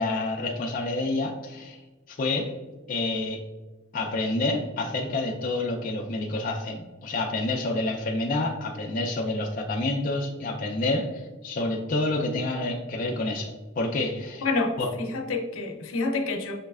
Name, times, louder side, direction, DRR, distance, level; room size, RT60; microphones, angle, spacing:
voice 1, 0.0-1.8 2.1-2.6 2.9-3.4 3.9-14.5 14.8-14.9, left 2 dB, 40° left, 1 dB, 0.4 m, -28 dB
voice 2, 14.4-16.5, left 3 dB, 80° left, 2 dB, 0.6 m, -28 dB
5.6 x 3.1 x 2.3 m, 1.2 s
head